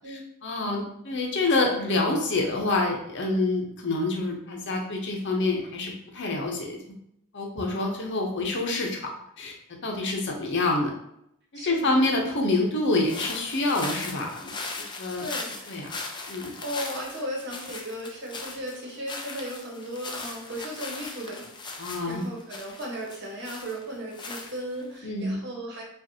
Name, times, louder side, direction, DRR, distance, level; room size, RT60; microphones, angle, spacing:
voice 1, 0.1-6.8 7.3-9.1 9.4-9.5 9.8-10.9 11.5-14.5 15.0-15.2 15.7-15.9 16.3-16.5 21.8-22.3 25.0-25.4, left 2 dB, 55° left, 1 dB, 0.8 m, -27 dB
voice 2, 11.5-12.0 15.2-15.7 16.6-21.5 21.8-25.8, equal, 55° right, -2 dB, 1.3 m, -36 dB
sound 1, 13.0-25.0, left 3 dB, 20° left, 0.4 m, -39 dB
5.0 x 2.5 x 2.8 m, 0.77 s
head